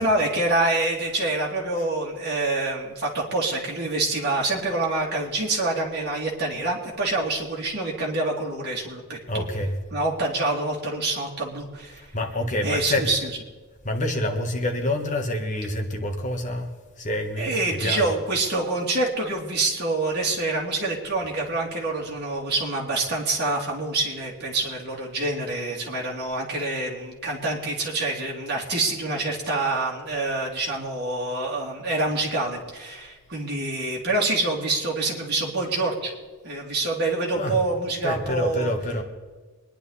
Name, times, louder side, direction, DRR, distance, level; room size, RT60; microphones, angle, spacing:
voice 1, 0.0-9.4 9.9-12.0 12.6-13.3 17.4-36.1 36.4-38.7, right 2 dB, 45° right, -3 dB, 3.0 m, -26 dB
voice 2, 9.3-9.7 12.1-13.1 13.8-16.7 17.0-18.0 37.3-37.6 38.0-39.0, left 1 dB, 35° left, 3 dB, 1.6 m, -27 dB
24.0 x 10.5 x 4.2 m, 1.4 s
head